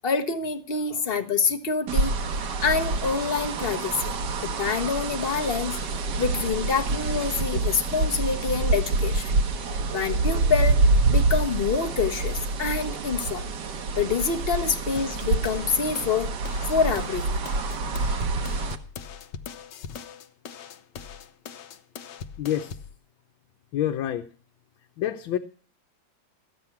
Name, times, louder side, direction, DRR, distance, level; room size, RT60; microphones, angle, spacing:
voice 1, 0.0-2.1 2.6-4.1 4.4-5.8 6.2-9.3 9.9-10.8 11.1-13.4 14.0-16.3 16.7-17.4, left 5 dB, 40° left, 8 dB, 0.9 m, -26 dB
sound 1, 1.9-18.7, right 3 dB, 65° right, 1.7 m, -26 dB
sound 2, 15.0-22.9, left 7 dB, 70° left, 1.4 m, -41 dB
voice 2, 22.4-22.7 23.7-24.3 25.0-25.4, left 11 dB, 90° left, 5 dB, 1.6 m, -27 dB
14.0 x 9.2 x 5.8 m, 0.42 s
omnidirectional pair, 2.1 m